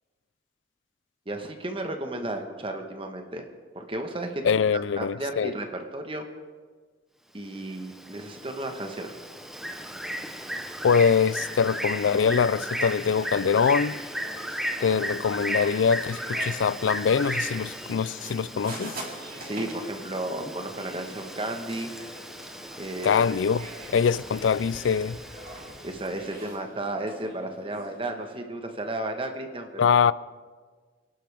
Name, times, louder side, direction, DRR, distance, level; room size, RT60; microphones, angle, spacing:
voice 1, 1.3-3.5 3.7-6.3 7.3-9.1 19.4-21.9 22.8-23.2 25.8-30.0, right 1 dB, 30° right, 1.3 m, -33 dB
voice 2, 4.4-5.5 10.8-14.0 14.8-18.9 23.0-23.6 23.9-25.2 29.8-30.1, left 6 dB, 85° left, 0.4 m, -23 dB
Bird, 7.5-26.3, equal, ahead, 0.8 m, -36 dB
sound 1, 10.7-28.4, right 1 dB, 50° right, 4.3 m, -45 dB
26.0 x 12.0 x 3.5 m
head